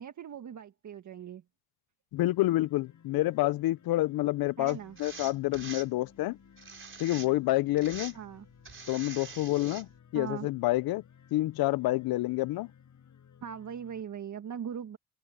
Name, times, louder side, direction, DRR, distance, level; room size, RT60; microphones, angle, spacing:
voice 1, 0.0-1.4 4.6-5.0 8.1-8.5 10.1-10.5 13.4-15.0, right 8 dB, 50° right, 1.7 m, -40 dB
voice 2, 2.1-6.4 7.0-8.1 8.9-11.0 11.3-12.7, left 17 dB, 75° left, 0.7 m, -28 dB
sound 1, 2.2-14.0, left 8 dB, 50° left, 5.5 m, -58 dB
sound 2, 4.7-5.9 6.6-7.5 7.8-8.2 8.6-9.8, right 5 dB, 35° right, 5.4 m, -44 dB
cardioid pair, 90°, 37 cm